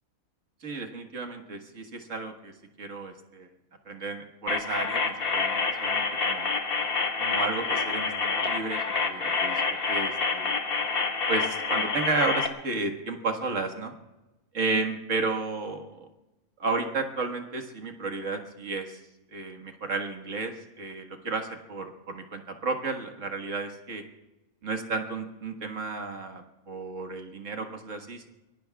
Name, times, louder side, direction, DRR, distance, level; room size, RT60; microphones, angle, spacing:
voice 1, 0.6-2.5 2.8-3.5 3.9-6.5 7.2-9.6 9.9-10.5 11.3-13.9 14.5-16.1 16.6-19.0 19.3-24.0 24.6-28.3, right 3 dB, 65° right, 4 dB, 1.9 m, -32 dB
sound 1, 4.5-12.5, left 4 dB, 45° left, 1.4 m, -28 dB
24.5 x 22.0 x 2.3 m, 1.0 s
omnidirectional pair, 1.4 m